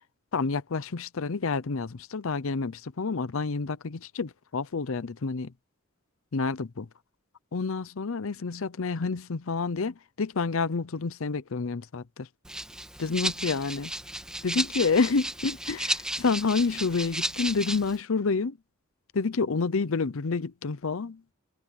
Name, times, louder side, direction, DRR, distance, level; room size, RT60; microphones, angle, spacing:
voice 1, 0.3-5.5 6.3-6.9 7.5-12.3 13.0-13.9 14.4-18.6 19.1-21.2, left 4 dB, 70° left, 0.6 m, -29 dB
Rattle (instrument), 12.4-18.0, right 1 dB, 5° right, 2.2 m, -33 dB
head